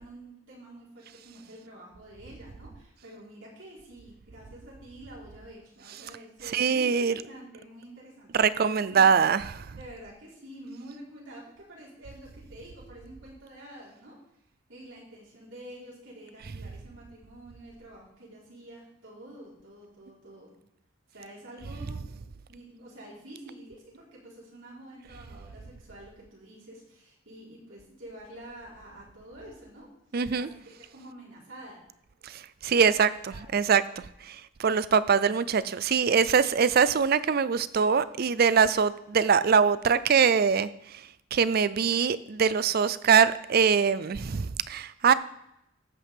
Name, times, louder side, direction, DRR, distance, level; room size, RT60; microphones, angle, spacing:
voice 1, 0.0-9.2 9.7-14.2 14.7-20.5 21.1-22.1 22.5-29.9 30.4-30.5 30.9-31.9 33.3-33.6, right 1 dB, 80° right, -5 dB, 4.2 m, -48 dB
voice 2, 6.5-7.1 8.3-9.6 30.1-30.5 32.6-33.8 34.3-40.7 41.3-45.1, right 6 dB, 50° right, 16 dB, 0.5 m, -23 dB
13.0 x 8.6 x 3.6 m, 0.81 s
head